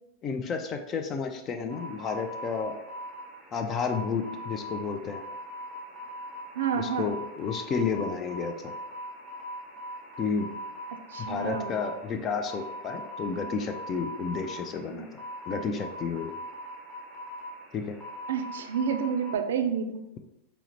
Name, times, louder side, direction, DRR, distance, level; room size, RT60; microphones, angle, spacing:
voice 1, 0.2-2.7 3.5-5.2 6.8-8.7 10.2-10.5 11.2-16.3 17.7-18.0, left 5 dB, 30° left, 5 dB, 0.3 m, -31 dB
sound 1, 1.7-19.4, equal, 10° left, 0.8 m, -41 dB
voice 2, 6.5-7.2 11.1-11.8 14.9-15.1 18.3-20.0, right 7 dB, 60° right, 7 dB, 0.3 m, -29 dB
4.5 x 2.0 x 2.9 m, 0.90 s
figure-of-eight pair, 90°, 0 cm